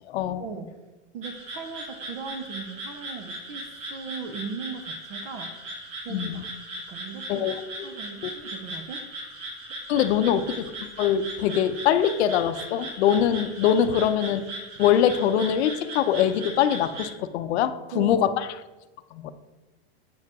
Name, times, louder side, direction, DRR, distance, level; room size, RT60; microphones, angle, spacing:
voice 1, 0.1-0.4 6.1-6.4 7.3-7.5 8.2-8.3 9.9-10.7 11.0-14.4 14.8-18.5 19.1-19.3, left 9 dB, 75° left, 12 dB, 0.6 m, -23 dB
voice 2, 1.1-5.6 6.0-6.5 6.9-7.5 7.8-9.0 17.9-18.2, right 5 dB, 25° right, 7 dB, 0.3 m, -38 dB
sound 1, 1.2-17.1, right 1 dB, 50° right, 2.0 m, -38 dB
7.7 x 4.7 x 3.5 m, 1.2 s
supercardioid pair, 160°, 33 cm